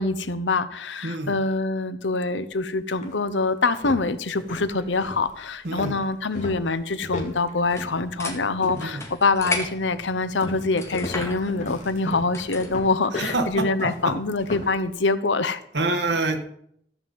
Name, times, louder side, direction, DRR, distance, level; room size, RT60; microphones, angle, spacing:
voice 1, 0.0-15.6, left 3 dB, 85° left, 12 dB, 0.9 m, -25 dB
sound 1, 2.4-2.5 3.0-3.1 3.6-9.1 9.4-9.8 10.4-14.8, left 2 dB, 40° left, 2.3 m, -36 dB
voice 2, 5.6-6.0 8.8-9.0 13.2-14.1 15.7-16.4, right 2 dB, 70° right, 5 dB, 1.7 m, -26 dB
sound 2, 7.6-12.8, left 1 dB, 15° left, 2.1 m, -35 dB
14.0 x 5.5 x 7.8 m, 0.69 s
head